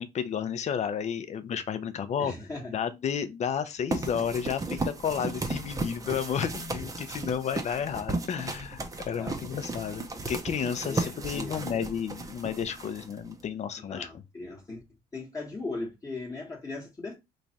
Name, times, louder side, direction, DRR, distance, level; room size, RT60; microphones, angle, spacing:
voice 1, 0.0-2.3 2.7-8.8 9.1-14.2, left 8 dB, 40° left, 0.6 m, -32 dB
voice 2, 2.2-2.7 9.1-9.6 10.8-11.7 13.8-14.8 15.1-17.1, left 3 dB, 20° left, 1.0 m, -38 dB
sound 1, 3.9-13.4, right 3 dB, 20° right, 0.6 m, -35 dB
3.1 x 2.4 x 4.0 m
cardioid pair, 110°, 17 cm